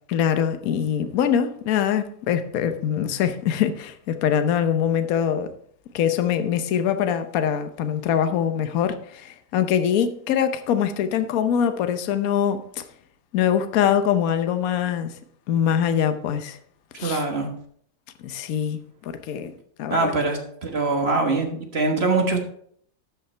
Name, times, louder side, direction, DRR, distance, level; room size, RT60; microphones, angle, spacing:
voice 1, 0.1-5.5 5.9-12.8 13.3-15.2 15.5-16.6 17.0-17.2 18.2-19.5 19.8-20.1, left 9 dB, 60° left, 1.1 m, -23 dB
voice 2, 17.0-17.5 19.9-22.4, right 3 dB, 40° right, 1.4 m, -23 dB
12.5 x 5.8 x 4.3 m
omnidirectional pair, 2.0 m